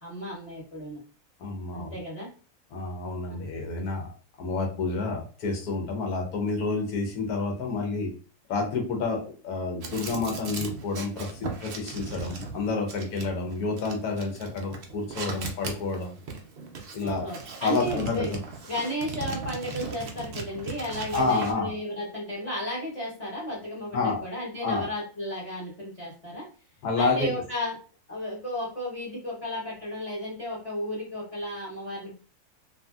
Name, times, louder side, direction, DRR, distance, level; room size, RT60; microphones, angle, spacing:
voice 1, 0.0-1.0 1.7-2.3 3.3-3.4 17.0-18.3 18.7-26.5 27.0-27.7 28.1-32.2, equal, 25° left, -7 dB, 0.9 m, -33 dB
voice 2, 1.4-2.0 2.7-4.1 4.4-8.1 8.5-16.1 16.9-17.3 17.6-18.4 21.1-21.7 23.9-24.2 24.6-24.9 26.8-27.3, left 3 dB, 85° left, 2 dB, 1.2 m, -29 dB
sound 1, 9.8-21.5, right 4 dB, 80° right, 0.5 m, -38 dB
2.7 x 2.6 x 2.3 m, 0.37 s
omnidirectional pair, 1.6 m